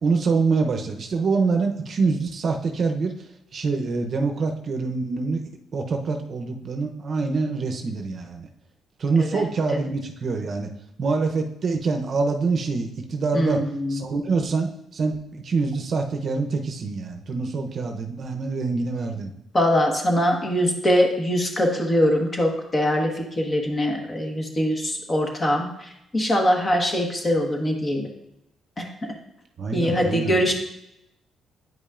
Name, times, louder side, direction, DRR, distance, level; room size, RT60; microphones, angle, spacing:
voice 1, 0.0-3.1 3.5-5.4 5.7-8.5 9.0-10.7 11.0-13.6 13.9-19.3 29.6-30.4, right 4 dB, 50° right, 4 dB, 0.7 m, -25 dB
voice 2, 13.3-14.0 19.5-28.1 28.8-28.9 29.7-30.5, equal, 30° left, 2 dB, 1.3 m, -22 dB
9.2 x 5.3 x 2.5 m, 0.85 s
cardioid pair, 90°, 0 cm